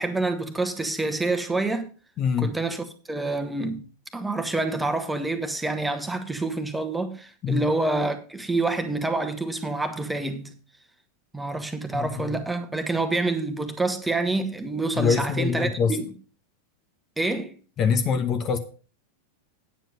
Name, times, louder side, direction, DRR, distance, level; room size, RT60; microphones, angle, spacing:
voice 1, 0.0-1.9 2.4-3.9 4.1-10.5 11.3-16.0 17.2-17.5, right 2 dB, 5° right, 1.3 m, -27 dB
voice 2, 2.2-2.5 7.4-7.6 11.9-12.2 14.9-16.0 17.8-18.6, left 6 dB, 30° left, 1.0 m, -24 dB
9.2 x 7.6 x 5.3 m
figure-of-eight pair, 90°, 0 cm